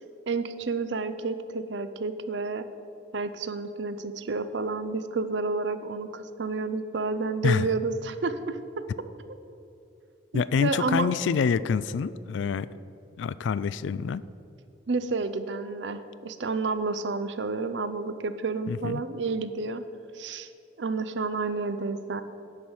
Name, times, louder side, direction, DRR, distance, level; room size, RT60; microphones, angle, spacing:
voice 1, 0.3-2.6 3.1-8.6 10.3-11.1 14.9-19.8 20.1-20.5 20.8-22.2, right 3 dB, 70° right, 12 dB, 0.6 m, -30 dB
voice 2, 10.3-12.7 13.2-14.2 18.7-19.0, left 6 dB, 80° left, 17 dB, 0.3 m, -26 dB
9.9 x 6.3 x 7.1 m, 2.8 s
head